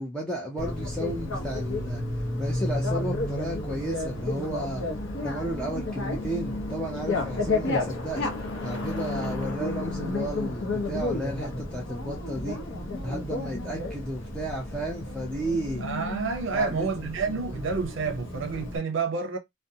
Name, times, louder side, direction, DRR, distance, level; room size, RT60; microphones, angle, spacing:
voice 1, 0.0-2.0 2.4-4.9 5.2-8.3 8.6-12.6 13.0-15.8 16.5-17.0, right 1 dB, 5° left, 0.6 m, -33 dB
Bicycle, 0.6-18.8, left 2 dB, 65° left, 0.7 m, -32 dB
voice 2, 15.8-19.4, right 4 dB, 70° right, 0.6 m, -29 dB
2.5 x 2.1 x 2.6 m
head